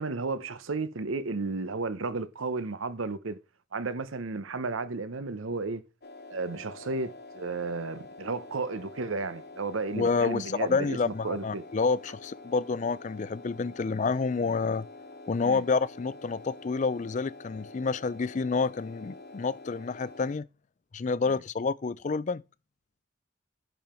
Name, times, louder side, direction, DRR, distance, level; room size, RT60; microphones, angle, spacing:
voice 1, 0.0-3.4 3.7-5.8 6.3-11.6 15.4-15.6, right 3 dB, 90° right, 0.8 m, -33 dB
sound 1, 6.0-20.3, left 2 dB, 55° left, 1.2 m, -47 dB
voice 2, 9.9-14.9 15.3-20.5 20.9-22.4, left 4 dB, 40° left, 0.4 m, -29 dB
10.0 x 5.5 x 4.4 m
head